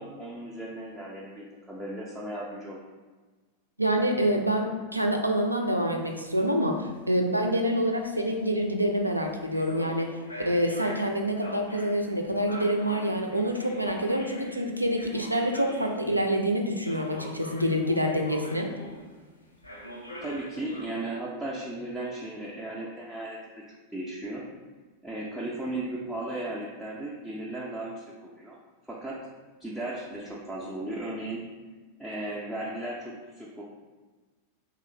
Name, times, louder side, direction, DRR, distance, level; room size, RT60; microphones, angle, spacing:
voice 1, 0.0-2.8 20.2-23.6 23.9-24.4 25.0-28.6 28.8-29.2 29.6-31.4 32.0-33.6, right 1 dB, ahead, -7 dB, 0.4 m, -36 dB
voice 2, 3.8-10.1 10.5-18.7, equal, 85° right, 3 dB, 0.3 m, -26 dB
sound 1, 6.0-16.2 16.8-19.3 19.6-20.8, equal, 80° left, 0.4 m, -43 dB
3.0 x 2.3 x 3.1 m, 1.3 s
figure-of-eight pair, 90°, 0 cm